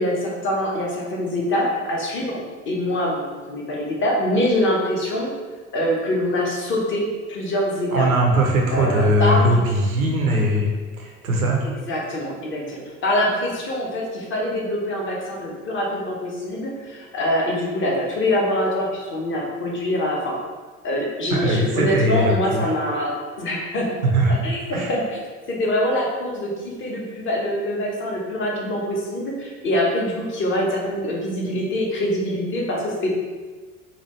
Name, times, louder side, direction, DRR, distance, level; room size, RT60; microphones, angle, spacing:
voice 1, 0.0-2.4 2.7-5.3 5.7-8.1 8.7-9.6 11.9-20.3 20.8-23.9 24.4-25.2 25.5-33.1, left 1 dB, 30° left, -2 dB, 0.9 m, -24 dB
voice 2, 7.9-10.7 11.0-11.6 21.3-22.7 24.1-24.4 24.7-24.9, right 1 dB, 80° right, 0 dB, 0.6 m, -20 dB
4.1 x 2.2 x 2.9 m, 1.4 s
figure-of-eight pair, 70°, 42 cm